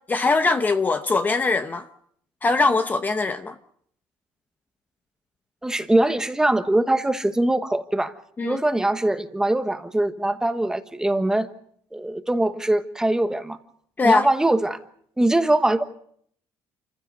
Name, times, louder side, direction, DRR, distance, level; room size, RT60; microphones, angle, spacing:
voice 1, 0.1-1.8 2.4-3.5 8.4-8.6 14.0-14.3, left 3 dB, 20° left, 0.9 m, -21 dB
voice 2, 5.6-8.1 8.4-11.5 11.9-13.6 14.0-14.8 15.2-15.8, right 1 dB, 5° right, 1.3 m, -22 dB
28.0 x 15.5 x 8.0 m
cardioid pair, 150°, 9 cm